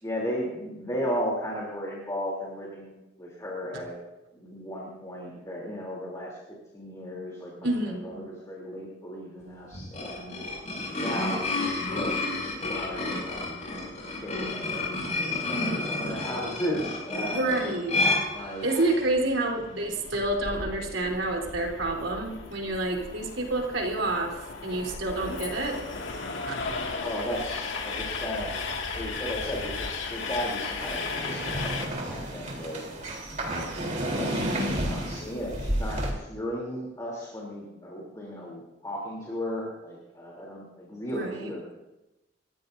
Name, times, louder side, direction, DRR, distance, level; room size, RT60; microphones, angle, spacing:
voice 1, 0.0-4.0 4.3-6.3 6.7-10.3 10.9-13.5 14.2-15.1 15.3-17.6 18.3-18.7 26.7-28.5 28.9-32.8 34.0-41.8, equal, 20° left, -4 dB, 3.2 m, -35 dB
voice 2, 7.6-8.2 17.3-18.0 18.6-24.4 24.6-25.8 26.5-26.6 41.1-41.5, right 2 dB, 75° right, -1 dB, 3.8 m, -28 dB
sound 1, 9.7-19.0, left 2 dB, 40° left, 6.1 m, -30 dB
Train, 18.4-31.9, left 4 dB, 80° left, 2.1 m, -36 dB
sound 2, 30.8-36.1, right 1 dB, 40° right, 3.6 m, -31 dB
29.0 x 15.0 x 2.7 m, 1.0 s
head